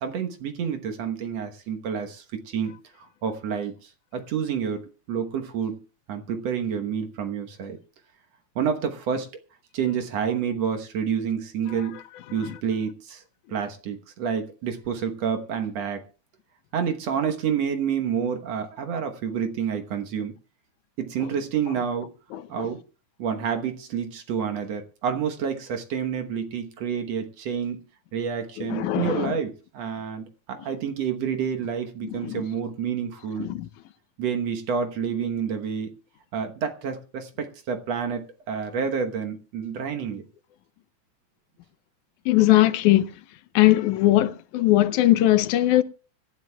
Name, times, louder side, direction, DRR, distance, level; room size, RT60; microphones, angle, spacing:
voice 1, 0.0-2.7 3.0-5.8 6.1-7.8 8.6-9.3 9.7-12.0 12.3-13.2 13.5-16.0 16.7-20.3 21.0-22.1 22.5-22.8 23.2-27.8 28.1-33.5 34.2-35.9 36.3-40.2, right 7 dB, 65° right, 2.2 m, -29 dB
voice 2, 11.7-12.0 12.4-12.6 21.2-21.3 21.7-21.8 22.3-22.7 28.6-29.4 32.0-32.5 33.4-33.7 42.3-43.2 43.5-45.8, left 15 dB, 80° left, 2.1 m, -21 dB
25.0 x 11.5 x 2.3 m
omnidirectional pair, 3.4 m